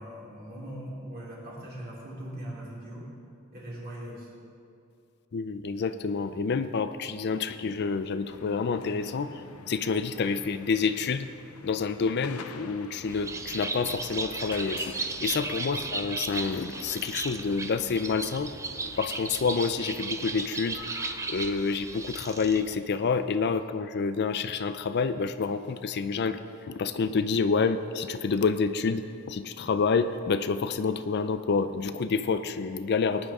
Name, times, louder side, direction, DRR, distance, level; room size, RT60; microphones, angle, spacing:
voice 1, 0.0-3.1 3.5-4.3 15.6-15.8, right 1 dB, 45° right, -6 dB, 3.7 m, -40 dB
voice 2, 5.3-9.4 9.7-11.3 11.6-18.5 19.0-20.8 21.3-33.3, left 5 dB, 50° left, 11 dB, 0.4 m, -28 dB
sound 1, 8.2-21.8, left 5 dB, 80° left, 0.7 m, -48 dB
Bird, 13.0-22.8, right 3 dB, 15° right, 0.4 m, -35 dB
20.0 x 10.0 x 3.7 m, 2.5 s
head